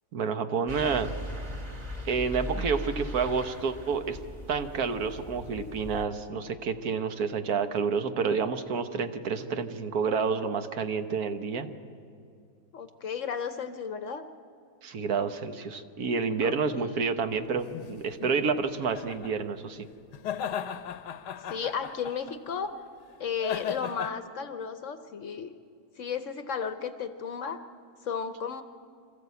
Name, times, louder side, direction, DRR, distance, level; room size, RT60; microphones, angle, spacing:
voice 1, 0.1-1.1 2.0-4.2 4.5-11.7 14.8-19.9, right 5 dB, 65° right, 8 dB, 1.4 m, -29 dB
sound 1, 0.7-6.0, equal, 25° right, 1.9 m, -38 dB
voice 2, 12.7-14.2 16.4-17.1 21.5-22.8 23.2-25.5 26.0-27.6 28.0-28.6, left 6 dB, 55° left, 10 dB, 1.0 m, -34 dB
sound 2, 17.6-19.3 20.1-22.5 23.4-24.1, left 8 dB, 85° left, 1.3 m, -37 dB
25.0 x 14.0 x 8.1 m, 2.4 s
omnidirectional pair, 1.7 m